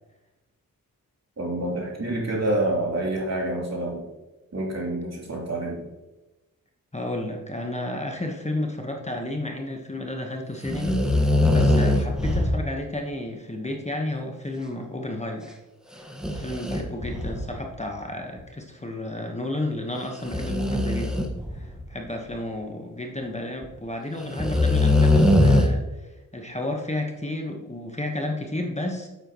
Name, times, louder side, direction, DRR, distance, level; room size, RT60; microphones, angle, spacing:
voice 1, 1.4-4.1 4.5-5.9, right 1 dB, 50° right, -3 dB, 3.2 m, -27 dB
voice 2, 6.9-15.5 15.9-21.2 21.5-29.1, left 1 dB, 20° left, 2 dB, 1.2 m, -32 dB
sound 1, 10.6-12.7 16.1-17.7 18.4-18.5 20.3-21.9 23.6-23.7 24.4-25.7, left 1 dB, ahead, 1.4 m, -21 dB
9.1 x 7.8 x 3.1 m, 1.0 s
cardioid pair, 60°, 34 cm